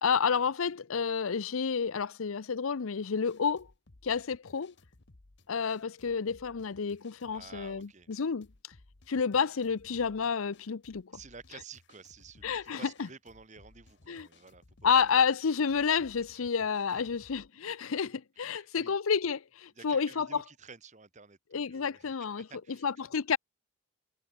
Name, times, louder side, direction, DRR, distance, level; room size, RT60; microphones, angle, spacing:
voice 1, 0.0-3.7 4.0-4.7 5.5-8.5 9.1-11.1 12.4-13.1 14.1-14.3 14.8-20.4 21.5-23.4, left 6 dB, 75° left, 0.6 m, -30 dB
sound 1, 3.3-17.5, left 2 dB, 55° left, 1.3 m, -60 dB
voice 2, 7.3-8.1 11.1-15.2 16.1-16.5 16.9-17.0 18.4-19.0 19.8-23.0, right 5 dB, 35° right, 1.4 m, -52 dB
head